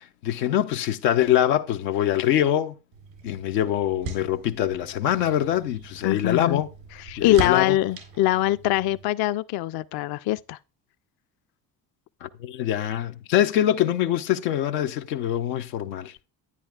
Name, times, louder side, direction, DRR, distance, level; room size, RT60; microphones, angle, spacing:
voice 1, 0.0-2.7 3.2-6.7 7.2-7.8 12.2-16.1, left 11 dB, 85° left, 0.7 m, -24 dB
sound 1, 2.9-9.1, right 4 dB, 90° right, 3.9 m, -39 dB
voice 2, 6.0-6.6 7.1-10.6, left 14 dB, 50° left, 0.5 m, -23 dB
11.0 x 9.6 x 2.4 m
hypercardioid pair, 55°, 48 cm